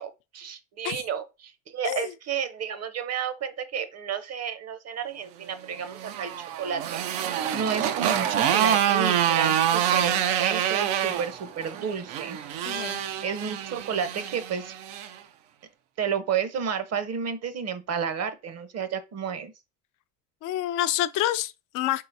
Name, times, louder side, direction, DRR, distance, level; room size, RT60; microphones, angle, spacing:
voice 1, 0.0-7.0 7.5-12.4 13.2-14.7 16.0-19.5, right 7 dB, 45° right, 0.8 m, -31 dB
Motorcycle, 5.7-15.1, right 10 dB, 75° right, 0.6 m, -26 dB
voice 2, 12.7-13.0 20.4-22.1, left 13 dB, 60° left, 0.5 m, -28 dB
3.9 x 3.7 x 2.7 m
hypercardioid pair, 60°, 37 cm